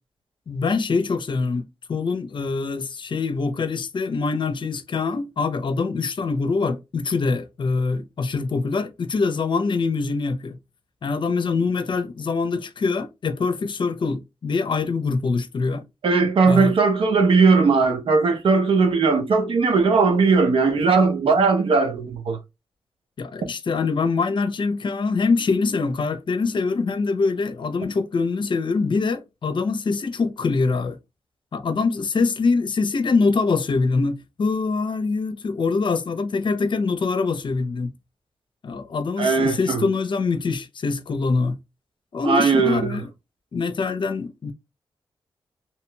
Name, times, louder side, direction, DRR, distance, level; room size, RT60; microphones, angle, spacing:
voice 1, 0.5-10.6 11.0-15.8 16.4-16.7 23.2-31.0 31.5-37.9 38.6-41.6 42.1-43.1 43.5-44.5, left 4 dB, 60° left, 0.6 m, -24 dB
voice 2, 16.0-22.4 39.2-39.8 42.2-43.0, right 4 dB, 75° right, 0.8 m, -18 dB
3.0 x 2.9 x 2.2 m
cardioid pair, 55°, 9 cm